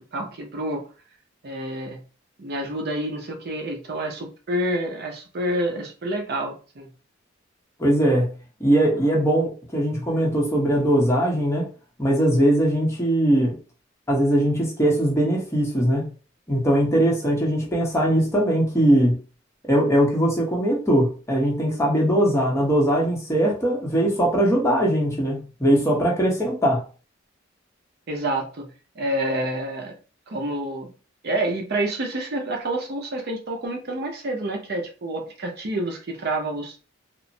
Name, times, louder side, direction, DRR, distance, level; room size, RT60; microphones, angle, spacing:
voice 1, 0.1-0.8 1.4-2.0 2.4-6.9 28.1-28.7 29.0-29.9 30.3-30.9 31.2-36.8, right 1 dB, 55° right, 0.6 m, -28 dB
voice 2, 7.8-8.3 8.6-11.7 12.0-13.6 14.1-16.1 16.5-19.2 19.7-26.8, right 1 dB, 15° left, 0.7 m, -20 dB
3.0 x 2.0 x 2.6 m
head